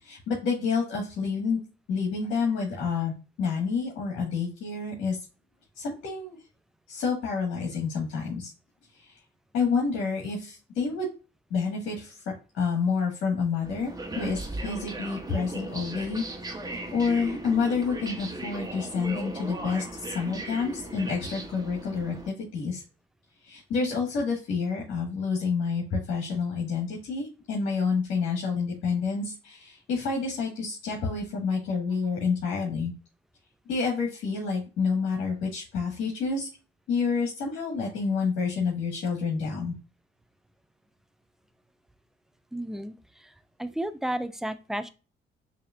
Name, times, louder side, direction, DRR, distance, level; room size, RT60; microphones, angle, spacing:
voice 1, 0.0-1.6 1.9-3.1 3.4-5.2 5.8-6.4 6.9-8.5 9.0-9.1 9.5-11.1 11.5-12.2 12.5-16.2 16.9-22.8 23.4-32.9 33.7-36.5 36.9-39.7, left 5 dB, 85° left, -3 dB, 1.6 m, -28 dB
sound 1, 13.6-22.3, right 2 dB, 20° right, 1.0 m, -37 dB
voice 2, 42.5-43.3 43.6-44.9, right 1 dB, ahead, 11 dB, 0.5 m, -33 dB
6.5 x 2.8 x 2.4 m, 0.33 s
cardioid pair, 90°, 20 cm